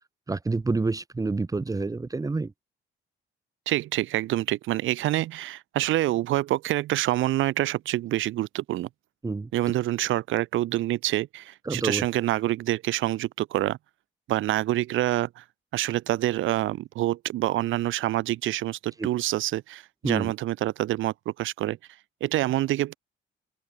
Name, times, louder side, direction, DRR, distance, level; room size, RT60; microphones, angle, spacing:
voice 1, 0.3-2.5 9.2-9.5 11.7-12.1 19.0-19.1 20.0-20.3, right 3 dB, 15° right, 0.8 m, -28 dB
voice 2, 3.7-8.9 9.5-13.8 14.3-15.4 15.7-21.8 22.2-23.0, right 15 dB, 80° right, 0.8 m, -26 dB
open air
cardioid pair, 90°, 20 cm